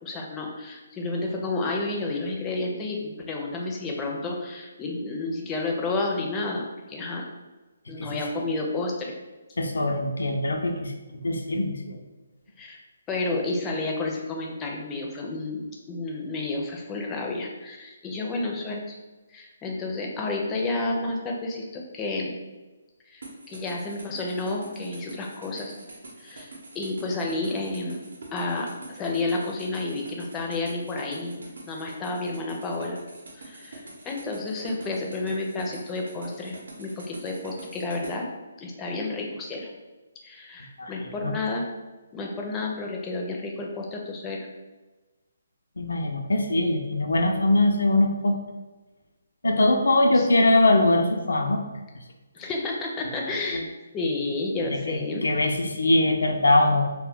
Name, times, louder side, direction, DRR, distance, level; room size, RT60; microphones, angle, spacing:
voice 1, 0.0-7.3 7.9-9.1 12.6-12.8 13.1-15.6 15.9-18.9 19.3-22.4 23.1-25.7 26.2-28.0 28.3-33.0 33.3-38.3 38.6-39.7 40.2-41.6 42.1-44.5 50.1-50.3 52.3-53.6 53.9-55.2, left 2 dB, 15° left, -1 dB, 0.4 m, -31 dB
voice 2, 9.6-10.9 11.2-12.0 40.8-41.3 45.8-48.4 49.4-51.6 53.5-53.6 54.6-56.8, left 2 dB, 90° left, 4 dB, 0.4 m, -22 dB
sound 1, 23.2-38.1, right 2 dB, 85° right, 0.7 m, -45 dB
2.2 x 2.1 x 3.6 m, 1.2 s
hypercardioid pair, 160°, 0 cm